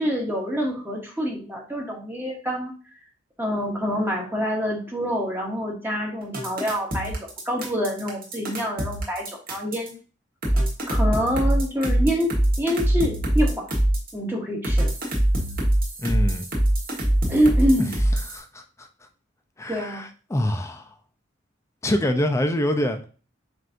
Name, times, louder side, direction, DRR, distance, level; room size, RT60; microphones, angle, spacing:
voice 1, 0.0-2.7 3.4-7.2 7.4-10.0 10.9-13.6 14.1-14.9 17.0-17.9 19.7-20.1, equal, 10° right, -1 dB, 1.0 m, -26 dB
sound 1, 6.3-9.9 10.4-14.1 14.6-18.4, right 1 dB, 50° right, 1.3 m, -23 dB
voice 2, 16.0-16.5 17.8-17.9 18.3-18.9 19.6-20.9 21.8-23.1, left 1 dB, 15° left, 6 dB, 0.5 m, -25 dB
7.5 x 2.6 x 2.6 m, 0.37 s
head